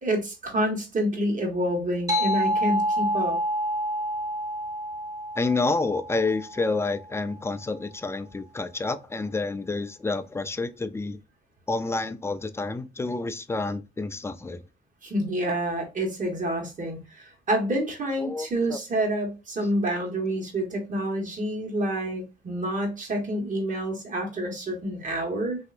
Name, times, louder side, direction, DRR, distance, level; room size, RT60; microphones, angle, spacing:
voice 1, 0.0-3.4 15.0-25.6, right 1 dB, 40° right, 1.5 m, -28 dB
sound 1, 2.1-7.1, equal, 15° right, 0.8 m, -28 dB
voice 2, 5.4-11.2 11.7-14.6 18.2-18.8, left 3 dB, 15° left, 0.4 m, -29 dB
3.2 x 2.8 x 2.4 m
cardioid pair, 90°, 20 cm